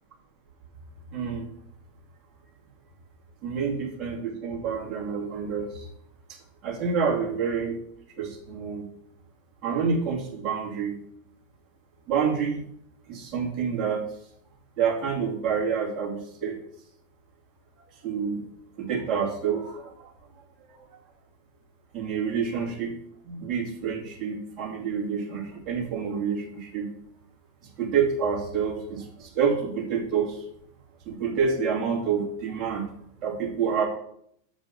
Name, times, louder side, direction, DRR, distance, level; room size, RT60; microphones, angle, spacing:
voice 1, 1.1-1.5 3.4-5.9 6.6-7.8 8.2-8.9 9.6-11.0 12.1-12.6 13.1-14.1 14.8-16.6 18.0-18.4 18.8-20.1 20.6-20.9 21.9-22.9 23.2-26.9 27.8-30.5 31.1-32.9 33.2-33.8, right 6 dB, 35° right, -1 dB, 2.3 m, -28 dB
6.8 x 5.2 x 6.9 m, 0.70 s
figure-of-eight pair, 90°, 0 cm